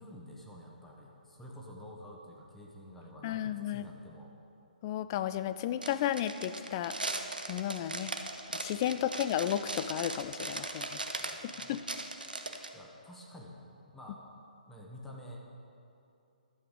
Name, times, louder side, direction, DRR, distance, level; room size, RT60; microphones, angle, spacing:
voice 1, 0.0-4.3 11.1-11.9 12.7-13.6 13.9-14.2 14.7-15.4, left 1 dB, 5° left, -3 dB, 1.1 m, -49 dB
voice 2, 3.2-3.9 4.8-8.1 8.5-11.0 11.4-11.8, left 11 dB, 30° left, 13 dB, 0.3 m, -33 dB
sound 1, 5.8-12.7, right 2 dB, 75° right, 0.8 m, -39 dB
12.0 x 7.6 x 5.1 m, 2.7 s
figure-of-eight pair, 130°, 5 cm